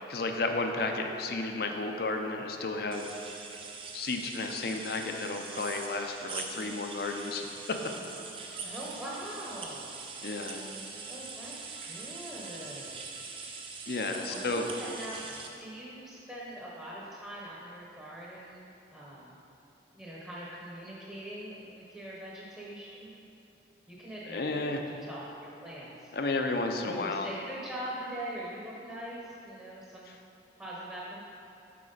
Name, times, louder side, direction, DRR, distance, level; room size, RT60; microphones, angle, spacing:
voice 1, 0.1-3.1 3.9-7.8 10.2-10.6 13.9-14.6 24.3-24.8 26.1-27.3, left 3 dB, 55° left, 4 dB, 0.5 m, -32 dB
sound 1, 2.9-15.5, right 4 dB, 30° right, 0.5 m, -43 dB
voice 2, 8.6-9.9 11.1-11.5 11.8-13.1 14.3-15.2 15.6-19.4 19.9-23.1 23.9-24.6 24.9-26.1 26.8-30.1 30.6-31.2, right 1 dB, 10° right, -6 dB, 0.8 m, -42 dB
7.5 x 6.1 x 3.9 m, 2.9 s
head